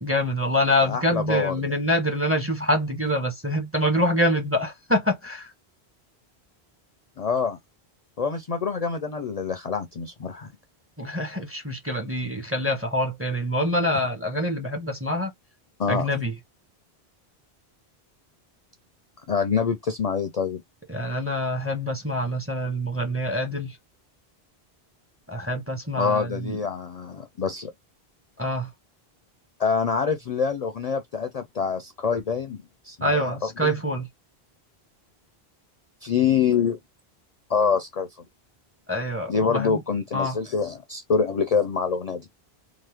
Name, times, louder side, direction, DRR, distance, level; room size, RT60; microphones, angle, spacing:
voice 1, 0.0-5.5 11.0-15.3 15.9-16.3 20.9-23.8 25.3-26.6 28.4-28.7 33.0-34.1 38.9-39.8 40.1-40.4, equal, 15° right, 0.6 m, -25 dB
voice 2, 0.8-1.7 7.2-7.6 8.2-10.5 15.8-16.1 19.3-20.6 26.0-27.7 29.6-33.4 33.6-33.7 36.0-36.8 37.5-38.1 39.3-42.3, left 6 dB, 50° left, 0.5 m, -25 dB
2.9 x 2.1 x 3.3 m
omnidirectional pair, 1.1 m